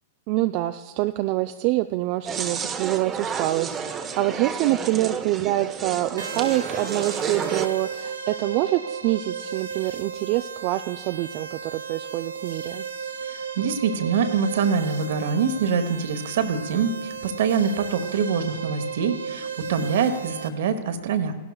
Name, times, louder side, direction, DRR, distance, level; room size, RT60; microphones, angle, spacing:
voice 1, 0.3-3.8 4.2-12.8, right 16 dB, 50° right, 8 dB, 0.4 m, -26 dB
sound 1, 2.3-7.7, right 6 dB, 25° right, 0.8 m, -31 dB
sound 2, 6.2-20.5, right 6 dB, 85° right, 0.8 m, -35 dB
voice 2, 13.3-21.4, right 6 dB, 65° right, 9 dB, 1.1 m, -24 dB
16.5 x 12.0 x 2.3 m, 1.5 s
hypercardioid pair, 110°, 0 cm